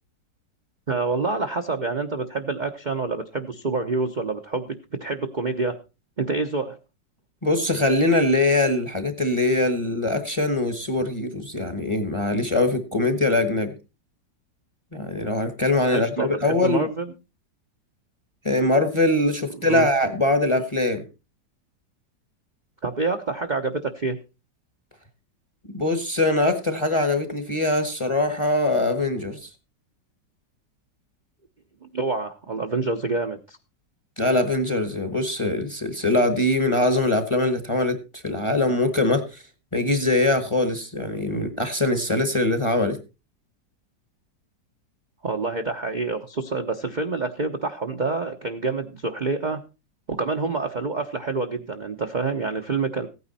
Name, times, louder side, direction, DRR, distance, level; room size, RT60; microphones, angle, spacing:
voice 1, 0.9-5.8 6.2-6.8 15.9-17.1 19.6-19.9 22.8-24.2 31.8-33.6 45.2-49.6 50.1-53.1, right 3 dB, 35° right, 4 dB, 0.7 m, -27 dB
voice 2, 7.4-13.7 14.9-16.9 18.4-21.0 25.7-29.5 34.2-39.4 39.7-43.0, left 2 dB, 20° left, 9 dB, 1.0 m, -22 dB
15.5 x 9.5 x 4.1 m, 0.30 s
omnidirectional pair, 1.9 m